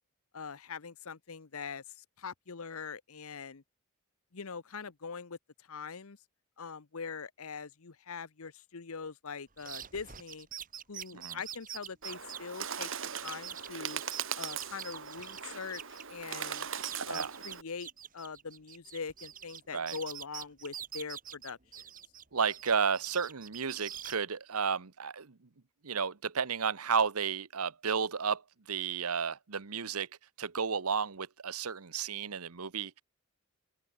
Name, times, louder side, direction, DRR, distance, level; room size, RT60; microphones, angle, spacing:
voice 1, 0.3-3.6 4.3-6.2 6.6-10.5 10.9-12.9 13.2-14.0 14.4-16.7 17.1-21.9, left 5 dB, 70° left, 0.9 m, -43 dB
sound 1, 9.6-16.0 16.3-19.6 19.9-22.2 22.5-24.2, right 10 dB, 40° right, 3.3 m, -45 dB
Bird, 12.0-17.6, right 7 dB, 60° right, 3.3 m, -39 dB
voice 2, 22.3-25.3 25.8-28.4 28.7-30.1 30.4-33.0, right 6 dB, 85° right, 1.1 m, -32 dB
open air
head